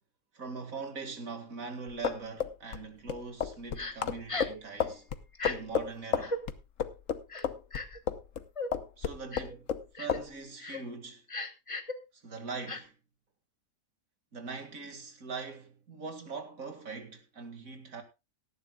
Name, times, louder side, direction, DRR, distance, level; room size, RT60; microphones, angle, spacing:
voice 1, 0.3-5.1 5.4-6.4 9.0-9.6 9.9-11.2 12.1-12.9 14.3-18.0, right 4 dB, 60° right, 2.5 m, -42 dB
sound 1, 1.9-8.4 8.7-9.8 10.1-10.3, left 8 dB, 60° left, 1.1 m, -32 dB
Crying sobbing, 3.8-3.9 4.3-4.6 5.3-5.6 6.2-6.4 7.3-8.0 8.6-8.7 9.3-9.6 10.0-10.2 10.6-10.8 11.3-11.9 12.7-12.8, left 2 dB, 25° left, 1.1 m, -36 dB
18.0 x 13.0 x 2.3 m
omnidirectional pair, 1.7 m